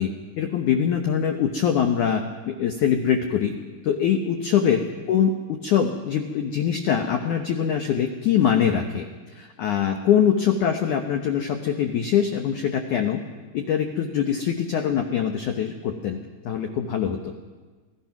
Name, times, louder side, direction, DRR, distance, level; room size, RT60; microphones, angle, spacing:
voice 1, 0.0-3.5 3.8-9.1 9.4-13.2 13.5-16.2 16.5-17.3, left 8 dB, 85° left, 5 dB, 1.7 m, -23 dB
26.5 x 18.0 x 6.0 m, 1.4 s
omnidirectional pair, 5.2 m